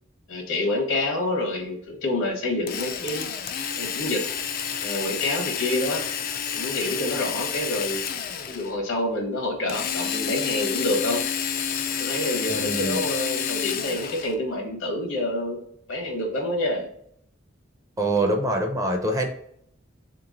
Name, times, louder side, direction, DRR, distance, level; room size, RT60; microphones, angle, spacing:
voice 1, 0.3-3.3 3.8-4.2 4.8-6.0 6.5-8.0 8.4-11.2 12.0-15.6 15.9-16.9, left 1 dB, 70° left, 1 dB, 1.1 m, -27 dB
Drill, 2.7-8.7 9.7-14.4, left 8 dB, 45° left, 0.4 m, -29 dB
voice 2, 12.5-13.0 18.0-19.3, right 1 dB, 15° right, 3 dB, 0.5 m, -24 dB
3.4 x 3.0 x 3.8 m, 0.68 s
head